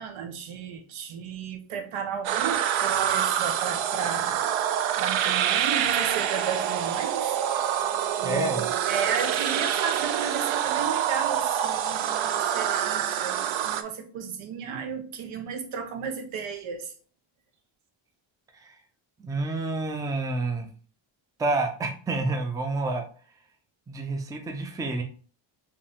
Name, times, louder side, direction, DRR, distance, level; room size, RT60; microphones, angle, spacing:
voice 1, 0.0-7.4 8.2-16.9, right 7 dB, 85° right, 6 dB, 1.0 m, -34 dB
sound 1, 2.2-13.8, right 10 dB, 70° right, 0.5 m, -26 dB
voice 2, 8.2-8.7 18.6-18.7 19.2-20.7 21.4-23.0 23.9-25.0, right 2 dB, 10° right, 4 dB, 0.4 m, -28 dB
4.8 x 2.8 x 3.4 m, 0.41 s
cardioid pair, 150°, 49 cm